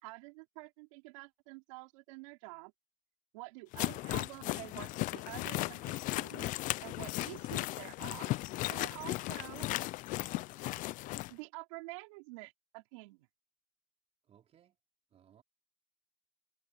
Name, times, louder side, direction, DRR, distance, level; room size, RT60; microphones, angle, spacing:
voice 1, 0.0-2.7 3.3-6.5 6.8-8.3 8.7-9.7 11.3-13.3, right 27 dB, 80° right, 4.7 m, -48 dB
sound 1, 3.7-11.3, left 18 dB, 55° left, 0.6 m, -36 dB
voice 2, 14.2-14.8 15.1-15.4, right 9 dB, 40° right, 4.3 m, -64 dB
supercardioid pair, 100°, 16 cm